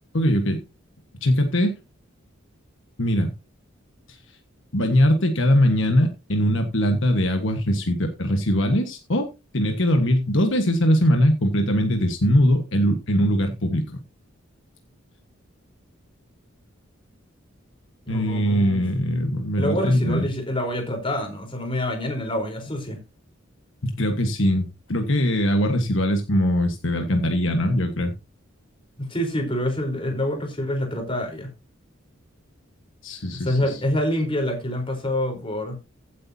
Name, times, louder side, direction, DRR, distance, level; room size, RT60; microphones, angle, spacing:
voice 1, 0.1-0.6 1.2-1.7 3.0-3.3 4.1-4.2 4.7-14.0 18.1-20.3 23.8-28.1 33.0-33.6, equal, 65° left, 1.6 m, -21 dB
voice 2, 18.1-18.8 19.6-23.0 29.0-31.5 33.3-35.8, left 1 dB, 25° left, 4.3 m, -26 dB
15.5 x 8.4 x 2.9 m
head